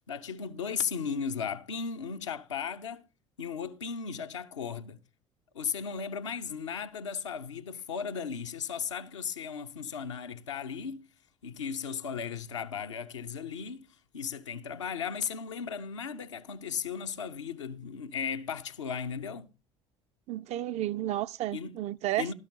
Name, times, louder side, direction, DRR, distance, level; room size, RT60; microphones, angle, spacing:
voice 1, 0.1-3.1 3.4-5.0 5.5-11.1 11.4-13.9 14.1-19.5 21.5-21.8 22.2-22.3, left 6 dB, 80° left, 0.6 m, -36 dB
voice 2, 20.3-22.3, right 14 dB, 45° right, 0.4 m, -32 dB
12.0 x 6.3 x 5.2 m
figure-of-eight pair, 55°, 15 cm